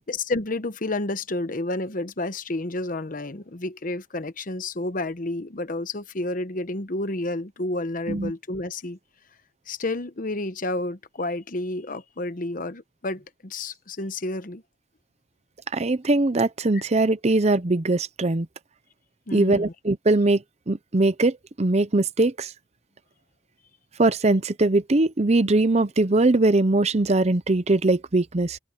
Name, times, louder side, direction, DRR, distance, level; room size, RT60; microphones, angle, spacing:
voice 1, 0.0-9.0 9.7-14.6 16.7-16.8 19.3-19.7, left 2 dB, 50° left, 1.0 m, -30 dB
voice 2, 15.7-18.5 19.3-22.5 24.0-28.6, right 2 dB, 35° right, 0.7 m, -21 dB
open air
head